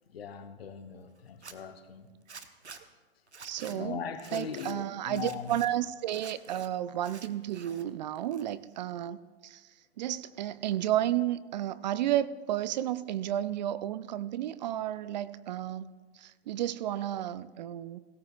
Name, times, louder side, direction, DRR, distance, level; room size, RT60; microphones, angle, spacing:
voice 1, 0.1-2.1 3.7-5.6, left 7 dB, 65° left, 8 dB, 1.2 m, -40 dB
Zipper (clothing), 1.3-1.5 2.3-2.8 3.3-3.8 4.2-4.7 5.1-5.7 6.1-6.7 7.0-7.8 8.1-8.8, right 5 dB, 90° right, 1.0 m, -48 dB
voice 2, 3.4-4.0 4.3-9.2 9.4-9.6 10.0-18.0, right 12 dB, 45° right, 16 dB, 0.4 m, -32 dB
17.0 x 16.5 x 2.5 m, 1.4 s
figure-of-eight pair, 110°, 33 cm